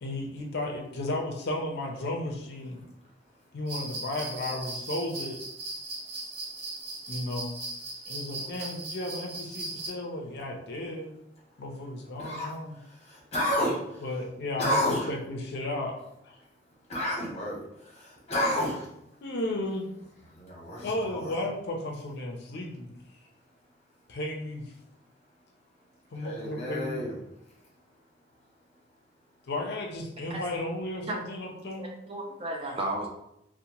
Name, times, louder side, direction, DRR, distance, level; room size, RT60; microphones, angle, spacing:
voice 1, 0.0-2.8 3.5-5.4 7.1-7.6 8.1-11.1 11.6-12.8 14.0-16.0 16.2-16.4 19.2-19.9 20.8-23.0 24.1-24.6 26.1-27.0 29.5-31.9, left 1 dB, 60° left, 0 dB, 0.4 m, -34 dB
sound 1, 3.7-9.9, right 2 dB, 55° right, 0.8 m, -38 dB
voice 2, 13.3-13.8 14.6-15.1 16.9-17.6 18.3-18.8 20.4-21.4 26.2-27.2, left 1 dB, 35° left, -4 dB, 0.8 m, -29 dB
voice 3, 31.8-33.1, right 1 dB, 30° right, 1 dB, 0.4 m, -33 dB
2.7 x 2.0 x 2.8 m, 0.80 s
head